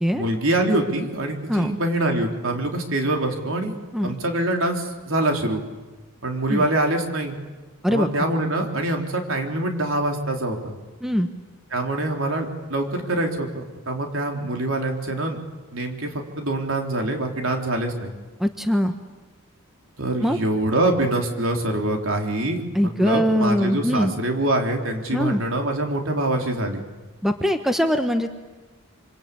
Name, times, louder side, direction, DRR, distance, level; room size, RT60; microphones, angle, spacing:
voice 1, 0.1-3.8 4.0-5.6 6.2-7.4 7.9-10.8 11.7-15.4 15.7-18.1 20.0-26.8, right 1 dB, 65° right, 3 dB, 3.9 m, -24 dB
voice 2, 18.4-18.9 20.2-20.4 22.7-24.1 25.1-25.4 27.2-28.3, equal, ahead, 7 dB, 1.2 m, -21 dB
26.0 x 25.5 x 8.6 m, 1.3 s
head